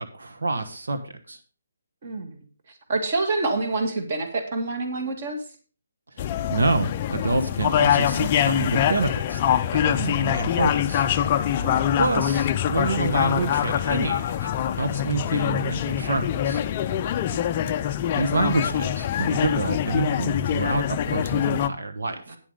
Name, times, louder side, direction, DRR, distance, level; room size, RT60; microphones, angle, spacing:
voice 1, 0.0-1.4 6.1-9.4 9.7-11.0 11.9-16.6 18.1-22.4, right 3 dB, 85° right, 8 dB, 1.3 m, -27 dB
voice 2, 2.0-2.4 2.9-5.4 11.6-11.9 17.3-17.7 22.3-22.4, right 3 dB, 35° right, 6 dB, 1.8 m, -27 dB
sound 1, 6.2-21.7, left 10 dB, 25° left, 0.4 m, -24 dB
9.3 x 7.5 x 5.0 m, 0.39 s
hypercardioid pair, 170°, 0 cm